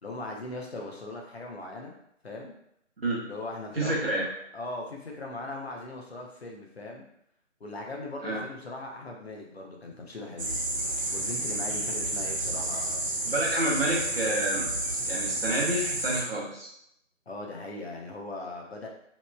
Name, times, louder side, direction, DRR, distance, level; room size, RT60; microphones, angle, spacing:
voice 1, 0.0-1.9 2.2-2.5 3.3-4.2 4.5-7.0 7.6-10.6 11.1-13.0 17.3-18.9, left 2 dB, 55° left, -1 dB, 0.6 m, -39 dB
voice 2, 3.7-4.3 8.2-8.4 13.3-14.7 15.0-16.7, right 1 dB, 50° right, -4 dB, 0.8 m, -28 dB
sound 1, 10.4-16.2, right 2 dB, 80° right, 0.8 m, -30 dB
2.9 x 2.0 x 2.2 m, 0.75 s
figure-of-eight pair, 160°, 38 cm